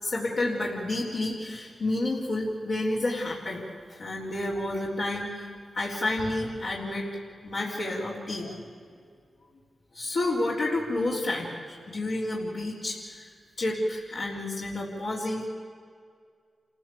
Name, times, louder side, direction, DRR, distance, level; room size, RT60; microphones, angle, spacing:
voice 1, 0.0-3.6 3.9-5.5 5.7-7.1 7.4-8.6 9.9-13.3 13.6-15.5, left 2 dB, 80° left, -7 dB, 3.8 m, -30 dB
27.5 x 15.0 x 8.6 m, 2.1 s
cardioid pair, 40°, 0 cm